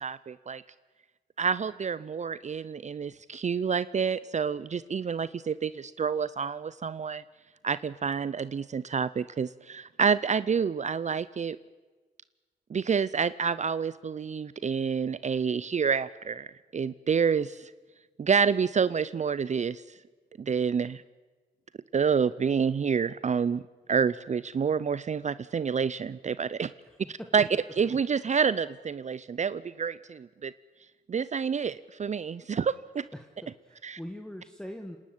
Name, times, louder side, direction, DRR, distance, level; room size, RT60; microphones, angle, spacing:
voice 1, 0.0-0.6 1.4-7.2 7.6-11.6 12.7-16.5 16.7-17.7 18.2-19.8 20.4-21.0 21.9-23.6 23.9-26.7 27.1-27.5 27.8-30.5 31.1-33.1 33.8-34.0, right 6 dB, 45° right, 17 dB, 0.6 m, -28 dB
voice 2, 33.1-35.0, equal, 5° left, 5 dB, 1.7 m, -42 dB
27.0 x 11.5 x 9.4 m, 1.3 s
cardioid pair, 65°, 17 cm